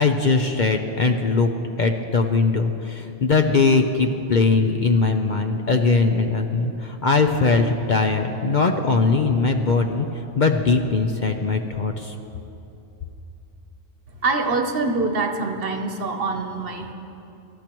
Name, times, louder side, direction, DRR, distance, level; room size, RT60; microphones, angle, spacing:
voice 1, 0.0-1.5 1.8-10.1 10.4-12.1, left 4 dB, 50° left, 4 dB, 0.7 m, -20 dB
voice 2, 14.2-16.9, right 3 dB, 55° right, 5 dB, 1.1 m, -24 dB
25.5 x 13.0 x 3.0 m, 2.8 s
omnidirectional pair, 1.2 m